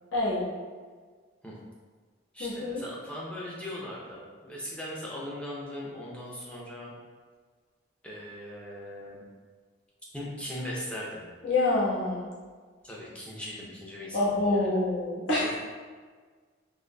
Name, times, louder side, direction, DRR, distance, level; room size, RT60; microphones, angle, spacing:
voice 1, 0.1-0.5 2.4-2.8 11.4-12.3 14.1-15.6, left 2 dB, 80° left, -9 dB, 1.2 m, -26 dB
voice 2, 2.3-6.9 8.0-9.2 10.1-11.2 12.8-14.7 15.4-15.5, left 1 dB, 5° left, -5 dB, 0.5 m, -39 dB
3.9 x 2.9 x 2.2 m, 1.5 s
head